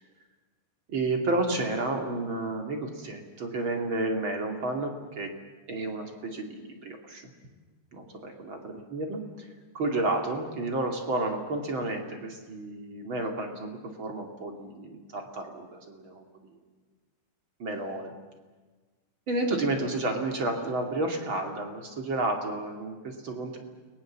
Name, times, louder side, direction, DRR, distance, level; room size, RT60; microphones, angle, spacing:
voice 1, 0.9-5.4 5.7-7.3 7.9-9.5 9.7-16.5 17.6-18.1 19.3-23.6, right 2 dB, 35° right, 3 dB, 2.6 m, -31 dB
29.5 x 21.0 x 7.4 m, 1.4 s
omnidirectional pair, 4.6 m